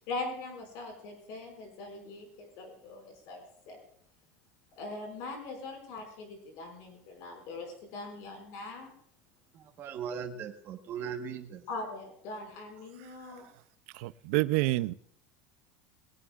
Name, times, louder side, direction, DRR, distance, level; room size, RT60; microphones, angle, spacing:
voice 1, 0.0-3.8 4.8-8.9 11.7-13.4, left 2 dB, 50° left, 3 dB, 5.6 m, -41 dB
voice 2, 9.5-11.6, right 7 dB, 30° right, 3 dB, 1.3 m, -39 dB
voice 3, 13.9-14.9, right 19 dB, 65° right, 15 dB, 0.5 m, -28 dB
20.5 x 17.5 x 2.4 m, 0.63 s
cardioid pair, 175°, 8 cm